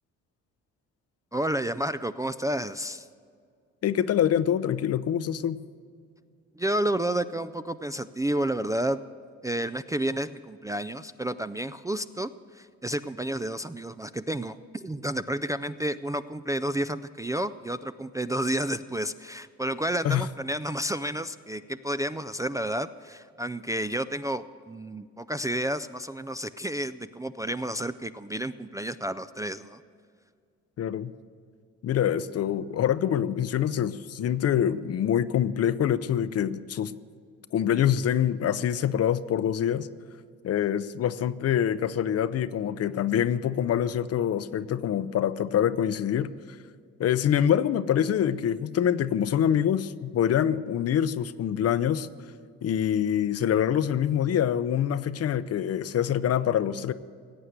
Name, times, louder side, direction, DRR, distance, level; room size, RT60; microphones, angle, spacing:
voice 1, 1.3-3.1 6.5-9.0 9.4-29.8, right 1 dB, 10° right, 10 dB, 0.3 m, -31 dB
voice 2, 3.8-5.6 20.0-20.3 30.8-31.1 31.8-36.9 37.5-39.9 40.4-46.6 47.0-52.1 52.6-56.9, left 9 dB, 55° left, 15 dB, 0.6 m, -25 dB
17.5 x 8.1 x 8.0 m, 2.1 s
cardioid pair, 90°, 30 cm